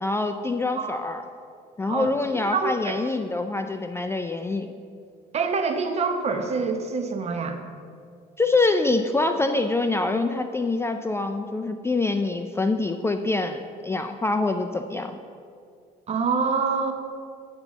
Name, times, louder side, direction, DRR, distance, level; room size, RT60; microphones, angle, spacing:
voice 1, 0.0-1.2 1.8-4.7 8.4-15.2, left 3 dB, 15° left, 7 dB, 0.3 m, -25 dB
voice 2, 2.5-3.0 5.3-7.6 16.1-16.9, right 5 dB, 40° right, 5 dB, 0.9 m, -26 dB
8.7 x 4.0 x 7.1 m, 2.2 s
cardioid pair, 110°, 17 cm